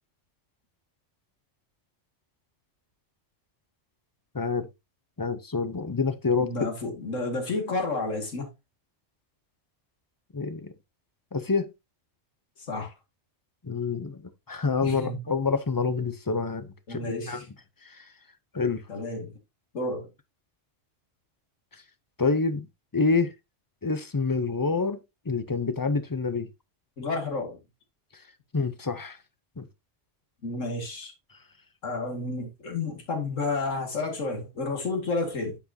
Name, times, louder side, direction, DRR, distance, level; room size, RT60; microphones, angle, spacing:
voice 1, 4.3-4.7 5.2-6.7 10.3-10.7 11.3-11.7 13.6-17.4 17.8-18.1 18.5-18.8 22.2-22.7 22.9-23.3 23.8-25.0 25.3-26.5 28.5-29.2 29.6-29.7, left 4 dB, 25° left, 0.5 m, -27 dB
voice 2, 6.4-8.5 12.7-12.9 14.8-15.2 16.9-17.4 18.9-19.3 19.7-20.1 27.0-27.6 30.4-31.1 31.8-35.6, left 3 dB, 80° left, 2.5 m, -31 dB
9.9 x 6.0 x 2.7 m
omnidirectional pair, 1.3 m